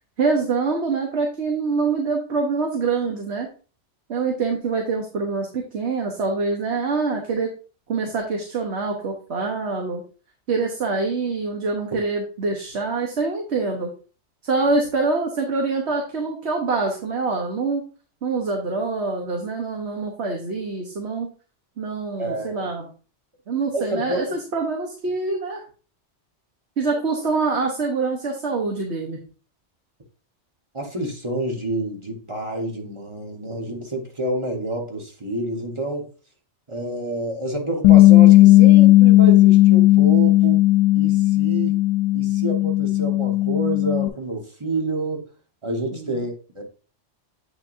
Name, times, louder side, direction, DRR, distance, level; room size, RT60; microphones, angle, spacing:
voice 1, 0.2-3.5 4.1-7.5 7.9-10.0 10.5-13.9 14.4-17.8 18.2-21.3 21.8-22.9 23.5-25.6 26.8-29.2 45.9-46.2, right 4 dB, 65° right, 1.3 m, -25 dB
voice 2, 22.2-22.7 23.7-24.4 30.7-36.1 36.7-40.6 40.9-41.7 42.1-45.3 45.6-46.6, right 1 dB, 25° right, 1.3 m, -28 dB
Bass guitar, 37.8-44.1, left 16 dB, 85° left, 0.9 m, -14 dB
7.9 x 6.1 x 2.6 m
omnidirectional pair, 1.2 m